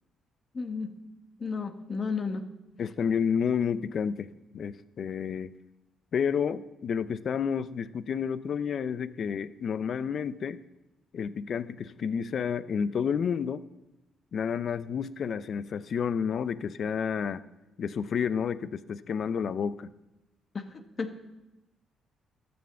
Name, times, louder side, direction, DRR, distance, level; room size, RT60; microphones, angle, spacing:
voice 1, 0.5-0.9 1.4-2.5 20.5-21.1, left 4 dB, 40° left, 7 dB, 1.3 m, -33 dB
voice 2, 2.8-5.5 6.1-10.6 11.1-13.6 14.3-17.4 17.8-19.9, left 7 dB, 55° left, 15 dB, 0.6 m, -30 dB
12.5 x 7.1 x 7.6 m, 0.99 s
cardioid pair, 90°, 0 cm